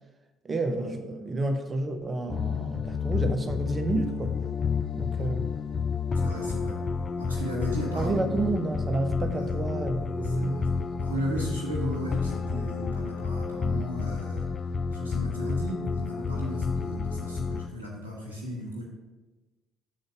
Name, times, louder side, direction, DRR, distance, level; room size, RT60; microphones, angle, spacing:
voice 1, 0.4-4.4 4.9-5.5 7.9-10.6, right 2 dB, 30° right, 7 dB, 0.7 m, -30 dB
sound 1, 2.3-17.7, left 5 dB, 40° left, 0.4 m, -30 dB
voice 2, 6.1-6.8 7.2-8.2 9.3-9.5 10.2-14.5 14.9-18.8, equal, 85° right, -5 dB, 1.2 m, -35 dB
6.3 x 3.9 x 5.9 m, 1.2 s
figure-of-eight pair, 50°, 0 cm